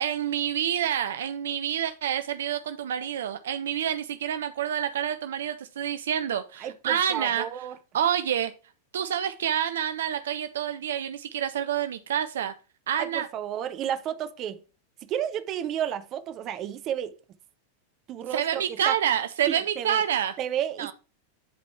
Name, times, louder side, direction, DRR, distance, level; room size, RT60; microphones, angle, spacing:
voice 1, 0.0-7.5 7.9-8.5 8.9-12.5 12.9-13.3 18.3-20.3 20.8-20.9, right 9 dB, 60° right, 0.5 m, -28 dB
voice 2, 6.6-7.8 13.0-14.6 15.0-17.2 18.1-18.9 19.5-20.0 20.4-20.9, right 10 dB, 35° right, 0.8 m, -32 dB
11.0 x 4.1 x 3.3 m
figure-of-eight pair, 90°, 0 cm